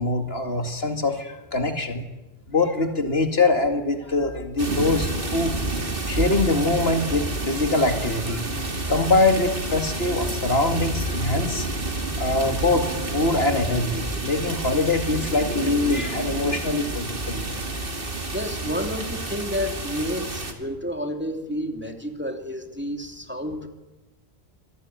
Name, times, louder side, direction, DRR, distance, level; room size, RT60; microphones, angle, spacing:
voice 1, 0.0-2.0 2.5-5.6 6.1-8.4 8.9-11.7 12.2-17.5, left 2 dB, 65° left, 6 dB, 2.5 m, -23 dB
sound 1, 4.6-20.5, right 2 dB, 55° right, 2.6 m, -29 dB
voice 2, 18.3-23.7, equal, 10° right, 4 dB, 2.7 m, -30 dB
25.5 x 18.5 x 9.4 m, 1.0 s
omnidirectional pair, 1.1 m